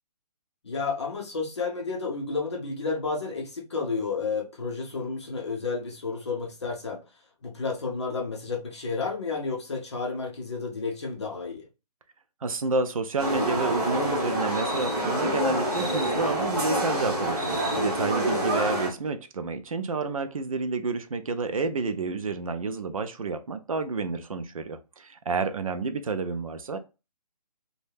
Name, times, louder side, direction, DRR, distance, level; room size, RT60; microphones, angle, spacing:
voice 1, 0.6-7.0 7.4-11.7, left 4 dB, 45° left, 0.6 m, -31 dB
voice 2, 12.4-26.8, right 4 dB, 55° right, 0.4 m, -30 dB
sound 1, 13.2-18.9, equal, 30° right, 1.0 m, -27 dB
2.6 x 2.1 x 3.3 m
hypercardioid pair, 180°, 21 cm